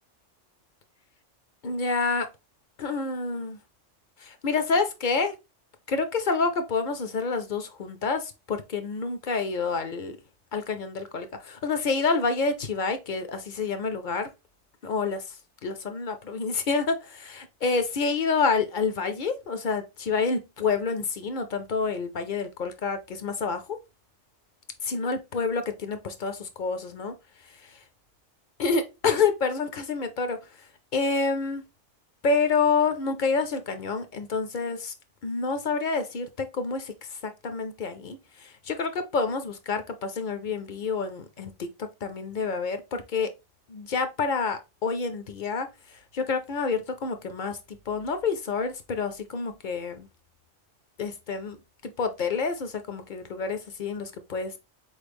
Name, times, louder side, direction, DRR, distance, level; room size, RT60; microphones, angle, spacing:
voice 1, 1.6-2.3 2.8-3.6 4.2-5.4 5.9-10.1 10.5-14.3 14.8-15.4 15.6-23.8 24.8-27.1 27.5-27.8 28.6-31.6 32.2-34.9 35.2-43.3 43.7-50.1 51.0-51.6 51.8-54.6, left 4 dB, 55° left, 0.6 m, -28 dB
4.3 x 3.2 x 3.3 m
omnidirectional pair, 1.3 m